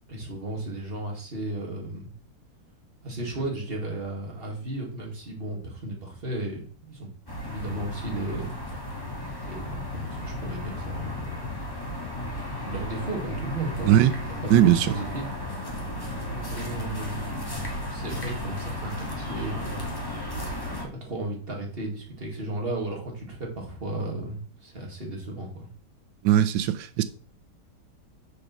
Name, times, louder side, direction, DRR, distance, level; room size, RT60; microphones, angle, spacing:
voice 1, 0.1-2.1 3.0-7.1 7.4-11.5 11.8-15.3 16.3-17.5 17.9-19.9 20.9-25.7, right 2 dB, 35° right, 2.5 m, -34 dB
sound 1, 7.3-20.8, left 1 dB, 15° left, 2.0 m, -34 dB
voice 2, 14.5-14.9 26.2-27.0, right 12 dB, 90° right, 1.3 m, -19 dB
6.7 x 5.3 x 6.0 m
omnidirectional pair, 1.9 m